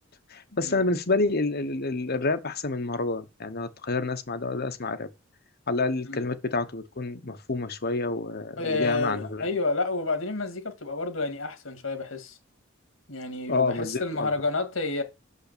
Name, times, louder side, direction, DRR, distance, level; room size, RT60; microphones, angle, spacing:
voice 1, 0.3-5.1 5.7-9.5 13.5-14.3, left 3 dB, 50° left, 1.1 m, -28 dB
voice 2, 8.6-12.4 13.1-15.0, left 3 dB, 75° left, 2.1 m, -29 dB
6.5 x 5.6 x 6.8 m
head